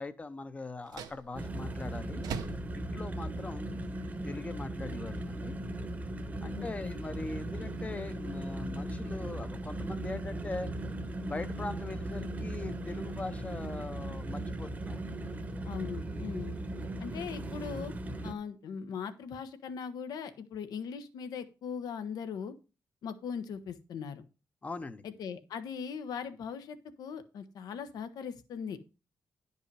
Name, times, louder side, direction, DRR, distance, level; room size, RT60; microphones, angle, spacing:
voice 1, 0.0-2.2 2.7-3.7 4.2-5.5 6.4-10.7 11.3-15.0 24.6-25.0, left 3 dB, 20° left, 12 dB, 0.8 m, -41 dB
sound 1, 0.7-18.5, right 7 dB, 90° right, 1.0 m, -51 dB
sound 2, 1.3-18.3, right 1 dB, 25° right, 1.0 m, -38 dB
voice 2, 6.5-7.0 15.6-16.6 17.0-17.9 18.2-22.5 23.0-24.2 25.0-28.8, left 6 dB, 75° left, 10 dB, 1.1 m, -40 dB
11.0 x 5.4 x 4.7 m, 0.32 s
cardioid pair, 150°, 7 cm